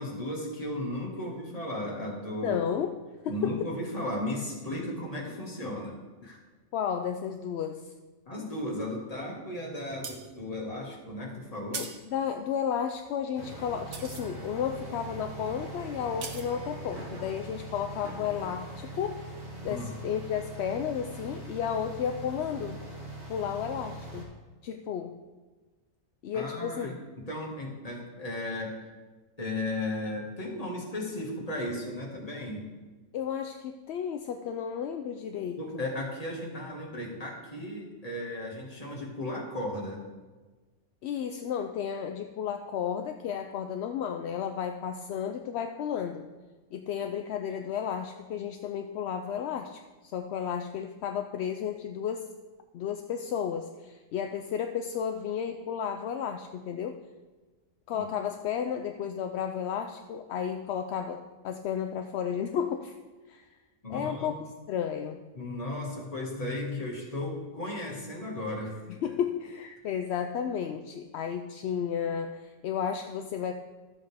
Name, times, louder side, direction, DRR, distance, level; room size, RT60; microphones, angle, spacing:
voice 1, 0.0-2.6 3.3-6.4 8.3-11.9 19.7-19.9 26.3-27.0 27.3-28.8 29.4-32.7 35.6-40.1 57.9-58.1 63.8-64.4 65.4-69.1, left 1 dB, 25° left, -2 dB, 1.9 m, -35 dB
voice 2, 2.4-3.0 3.2-3.7 6.7-7.9 11.7-19.3 19.6-22.8 23.3-24.3 24.6-25.2 26.2-26.9 33.1-35.8 41.0-46.3 46.7-52.3 52.7-57.0 57.9-62.9 63.3-63.5 63.9-64.4 64.7-65.3 68.9-73.5, left 8 dB, 65° left, 6 dB, 0.7 m, -33 dB
sound 1, 9.8-18.3 18.7-18.8, right 5 dB, 60° right, 1.2 m, -44 dB
sound 2, 13.3-24.2, right 2 dB, 30° right, 2.2 m, -42 dB
13.0 x 7.7 x 3.4 m, 1.3 s
omnidirectional pair, 1.5 m